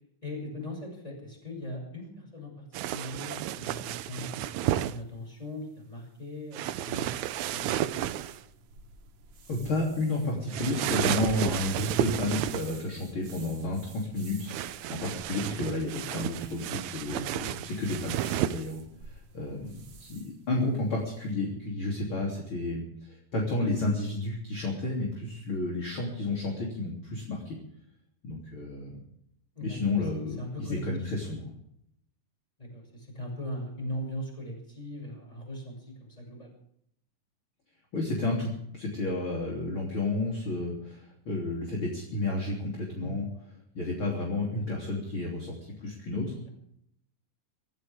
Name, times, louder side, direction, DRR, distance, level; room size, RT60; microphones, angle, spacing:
voice 1, 0.2-8.1 29.5-31.4 32.6-36.5 42.9-43.1 46.4-46.5, left 1 dB, 10° left, 0 dB, 7.3 m, -40 dB
Jacket Handling, 2.7-5.0 6.5-8.4 10.5-12.8 14.5-18.7, right 13 dB, 75° right, 1.8 m, -32 dB
sound 1, 7.1-20.4, right 3 dB, 55° right, 3.3 m, -51 dB
voice 2, 9.5-27.6 28.2-29.0 29.6-31.5 37.9-43.3 43.7-46.5, left 2 dB, 35° left, -2 dB, 3.9 m, -31 dB
26.5 x 14.5 x 3.6 m, 0.73 s
omnidirectional pair, 3.9 m